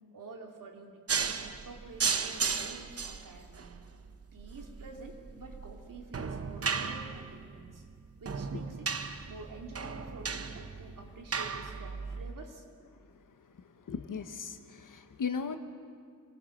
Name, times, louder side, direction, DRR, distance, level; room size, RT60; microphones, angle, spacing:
voice 1, 0.1-3.7 4.3-7.9 8.2-8.9 9.3-12.7, right 3 dB, 75° right, 1 dB, 2.8 m, -49 dB
sound 1, 1.1-12.3, right 5 dB, 45° right, 0.9 m, -35 dB
voice 2, 13.6-15.6, left 6 dB, 75° left, 7 dB, 1.3 m, -37 dB
27.5 x 20.5 x 6.5 m, 2.1 s
wide cardioid pair, 160°, 33 cm